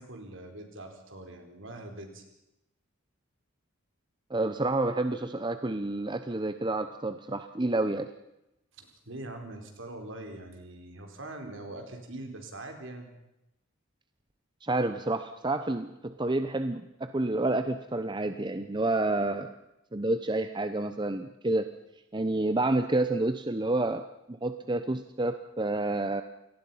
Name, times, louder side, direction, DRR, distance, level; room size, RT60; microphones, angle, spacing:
voice 1, 0.0-2.2 8.8-13.1, right 2 dB, 60° right, 4 dB, 4.4 m, -43 dB
voice 2, 4.3-8.1 14.6-19.5 19.9-21.7 22.1-26.2, right 2 dB, 20° right, 9 dB, 0.8 m, -29 dB
28.0 x 18.5 x 5.7 m, 0.90 s
head